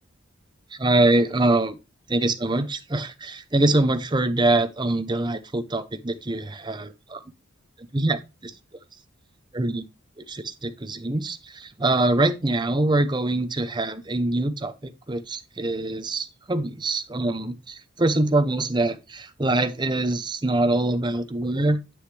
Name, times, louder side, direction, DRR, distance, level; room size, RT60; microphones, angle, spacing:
voice 1, 0.7-1.8 2.1-7.2 7.9-8.5 9.5-9.8 10.2-21.8, right 2 dB, 20° right, 0.7 m, -24 dB
9.5 x 6.2 x 3.3 m
head